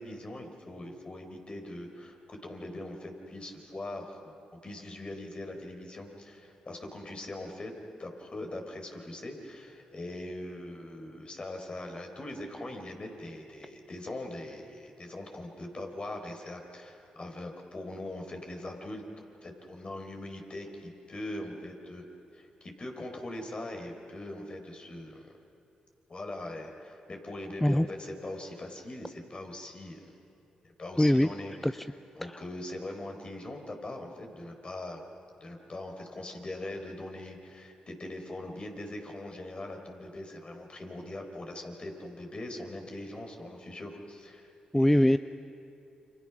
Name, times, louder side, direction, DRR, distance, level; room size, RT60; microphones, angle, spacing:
voice 1, 0.0-7.7 8.0-19.0 19.4-22.0 22.3-25.3 26.1-30.1 30.6-31.8 32.2-35.0 35.4-45.2, left 1 dB, 40° left, 3 dB, 4.5 m, -41 dB
voice 2, 31.0-31.3 31.6-31.7 44.7-45.2, left 1 dB, 5° left, 13 dB, 0.5 m, -21 dB
29.5 x 26.0 x 6.1 m, 2.6 s
supercardioid pair, 50°, 3 cm